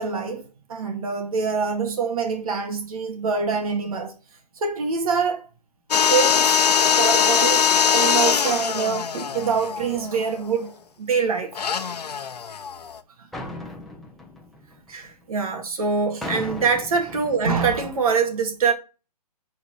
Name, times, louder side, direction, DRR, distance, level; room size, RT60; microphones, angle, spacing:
voice 1, 0.0-4.1 4.6-5.4 6.1-10.7 11.0-12.3 14.9-18.7, right 5 dB, 60° right, 2.2 m, -25 dB
sound 1, 5.9-10.5 11.5-13.0, left 7 dB, 75° left, 1.0 m, -21 dB
sound 2, 13.3-15.3 16.2-18.1, left 1 dB, ahead, 1.1 m, -37 dB
10.0 x 4.4 x 4.6 m
hypercardioid pair, 140°, 21 cm